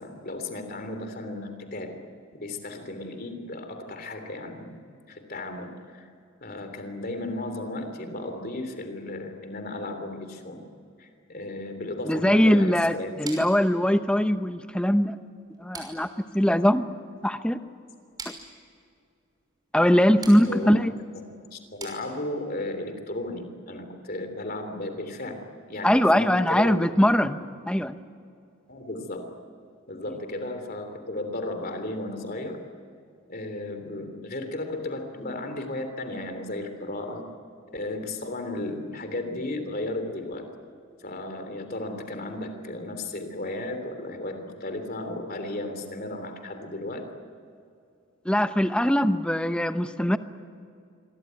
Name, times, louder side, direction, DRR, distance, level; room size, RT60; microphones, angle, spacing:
voice 1, 0.0-2.0 2.3-4.8 5.1-6.1 6.4-10.6 11.0-13.1 20.5-20.8 21.5-26.8 28.7-29.3 29.9-32.6 33.3-37.2 37.7-40.5 41.0-47.1, left 2 dB, 45° left, 7 dB, 3.3 m, -34 dB
voice 2, 12.1-15.2 15.6-16.1 16.3-16.8 17.2-17.6 18.3-18.4 19.7-20.9 25.8-27.4 27.7-28.0 48.3-50.2, equal, 5° left, 9 dB, 0.8 m, -21 dB
sound 1, 13.2-22.6, right 3 dB, 20° right, 5.9 m, -46 dB
27.0 x 22.5 x 9.4 m, 2.4 s
head